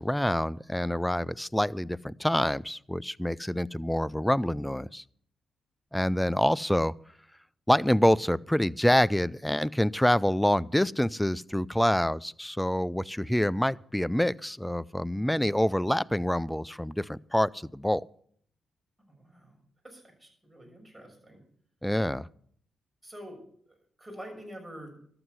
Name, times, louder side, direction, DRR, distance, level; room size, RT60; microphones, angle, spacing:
voice 1, 0.0-5.0 5.9-6.9 7.7-18.0 21.8-22.3, left 1 dB, 5° left, 0.4 m, -26 dB
voice 2, 19.1-19.6 19.8-21.4 23.0-25.0, equal, 10° right, 6.2 m, -47 dB
12.5 x 7.8 x 8.0 m
hypercardioid pair, 45°, 0 cm